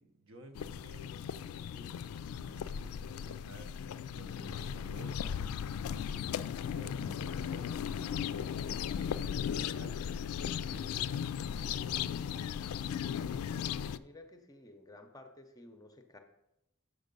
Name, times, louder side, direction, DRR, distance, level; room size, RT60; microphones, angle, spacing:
voice 1, 0.0-12.5, right 1 dB, 65° right, 6 dB, 0.8 m, -55 dB
sound 1, 0.5-14.0, left 8 dB, 85° left, 0.3 m, -37 dB
voice 2, 13.9-16.2, left 2 dB, 15° left, 5 dB, 0.6 m, -54 dB
6.5 x 6.4 x 5.2 m, 0.87 s
head